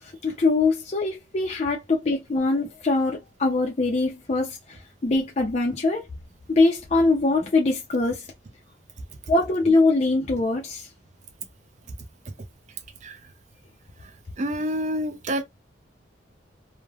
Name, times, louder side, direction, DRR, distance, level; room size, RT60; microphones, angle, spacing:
voice 1, 0.0-6.1 6.5-8.3 9.3-10.9, left 3 dB, 35° left, 0.4 m, -23 dB
voice 2, 14.4-15.4, equal, 40° right, 0.4 m, -28 dB
3.2 x 2.0 x 2.3 m
head